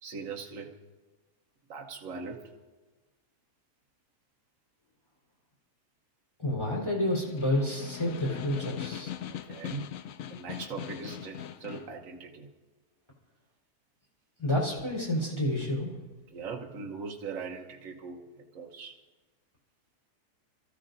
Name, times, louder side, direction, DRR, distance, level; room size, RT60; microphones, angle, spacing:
voice 1, 0.0-0.7 1.7-2.5 9.2-9.9 10.3-12.5 16.3-18.9, right 5 dB, 60° right, 0 dB, 1.4 m, -40 dB
voice 2, 6.4-9.1 14.4-16.0, left 1 dB, 15° left, -5 dB, 4.1 m, -29 dB
Snare drum, 7.0-12.0, left 10 dB, 65° left, 0.9 m, -40 dB
27.0 x 14.5 x 2.7 m, 1.2 s
omnidirectional pair, 1.7 m